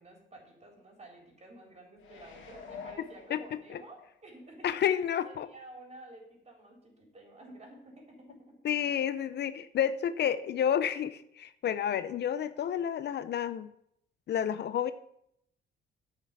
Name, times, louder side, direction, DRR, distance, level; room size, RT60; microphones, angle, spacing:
voice 1, 0.0-4.8 5.2-8.6, right 1 dB, 35° right, 1 dB, 3.9 m, -51 dB
sound 1, 2.0-4.1 4.5-4.6, left 6 dB, 80° left, 1.8 m, -47 dB
voice 2, 4.6-5.5 8.6-13.7 14.3-14.9, left 9 dB, 60° left, 14 dB, 0.6 m, -30 dB
9.0 x 5.9 x 8.1 m, 0.75 s
cardioid pair, 90°, 20 cm